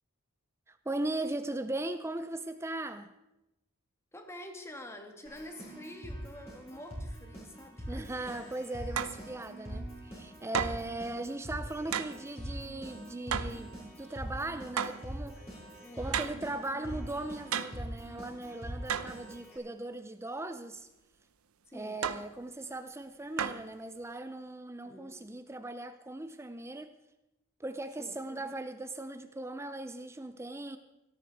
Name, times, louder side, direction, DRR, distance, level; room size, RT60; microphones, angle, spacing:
voice 1, 0.7-3.1 7.9-15.7 15.9-20.9 21.7-26.9 27.6-30.8, right 2 dB, 10° right, 10 dB, 0.5 m, -38 dB
voice 2, 4.1-8.5 15.8-16.2 21.7-22.0 24.8-25.2 28.0-28.1, left 1 dB, 10° left, 5 dB, 1.8 m, -47 dB
Keyboard (musical), 5.2-19.6, right 1 dB, 30° left, 5.9 m, -43 dB
sound 1, 9.0-9.2 10.5-10.9 11.9-12.2 13.3-13.6 14.8-15.1 16.1-16.4 17.5-17.9 18.9-19.2 22.0-22.3 23.4-23.7, right 7 dB, 75° right, 0.8 m, -33 dB
17.5 x 14.0 x 4.7 m, 0.92 s
head